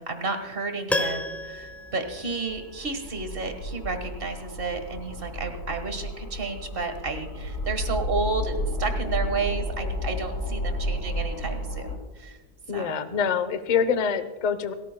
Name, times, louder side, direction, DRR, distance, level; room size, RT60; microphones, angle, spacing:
voice 1, 0.0-12.4 12.7-13.1, right 4 dB, 35° right, 7 dB, 1.6 m, -32 dB
Piano, 0.9-3.0 3.3-3.4, left 1 dB, ahead, 0.8 m, -31 dB
sound 1, 1.5-12.0, left 1 dB, 70° left, 4.4 m, -32 dB
voice 2, 12.7-14.7, left 7 dB, 40° left, 11 dB, 0.6 m, -25 dB
29.5 x 14.0 x 2.2 m, 1.3 s
omnidirectional pair, 1.7 m